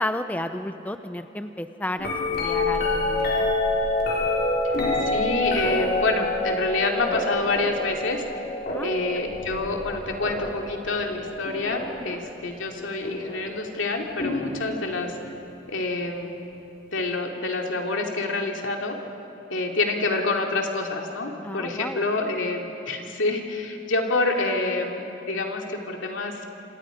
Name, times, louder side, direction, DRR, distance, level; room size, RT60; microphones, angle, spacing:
voice 1, 0.0-3.5 8.7-8.9 12.0-12.2 21.4-22.3, left 1 dB, 10° left, 8 dB, 0.6 m, -32 dB
sound 1, 2.0-12.1 13.0-13.5 14.2-15.2 17.0-17.1, left 2 dB, 55° left, 5.0 m, -27 dB
voice 2, 5.1-8.2 8.8-15.2 15.7-16.3 16.9-19.0 19.5-26.5, left 3 dB, 90° left, 1 dB, 2.7 m, -27 dB
28.0 x 26.0 x 5.1 m, 2.9 s
head